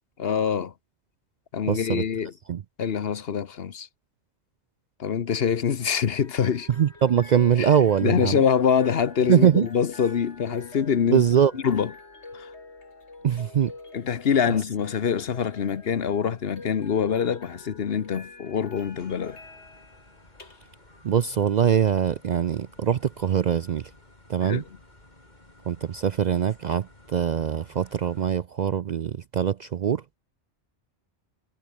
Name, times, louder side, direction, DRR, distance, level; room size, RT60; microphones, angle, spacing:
voice 1, 0.2-0.7 1.5-2.3 2.8-3.9 5.0-6.7 7.6-7.7 8.0-11.2 11.5-11.9 12.3-12.5 13.9-19.4 24.4-24.6, left 7 dB, 60° left, 1.2 m, -25 dB
voice 2, 1.7-2.0 2.5-2.6 6.8-8.4 9.3-9.7 11.1-11.5 13.2-13.7 21.0-23.9 24.3-24.6 25.7-30.0, right 9 dB, 55° right, 0.5 m, -22 dB
sound 1, 5.8-24.9, left 3 dB, 80° left, 3.5 m, -48 dB
sound 2, 18.8-28.3, left 1 dB, 40° left, 4.4 m, -54 dB
omnidirectional pair, 1.2 m